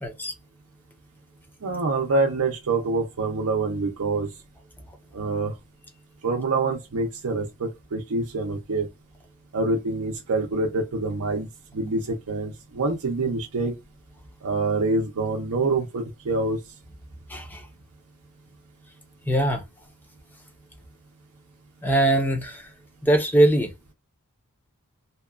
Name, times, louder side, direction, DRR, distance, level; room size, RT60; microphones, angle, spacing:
voice 1, 0.0-0.3 17.3-17.6 19.3-19.6 21.8-22.6 23.0-23.7, right 1 dB, 10° left, 0.5 m, -21 dB
voice 2, 1.6-4.3 5.1-5.5 6.2-8.9 9.5-11.5 11.7-13.7 14.4-16.6, right 3 dB, 75° right, 0.5 m, -26 dB
2.8 x 2.2 x 2.3 m
head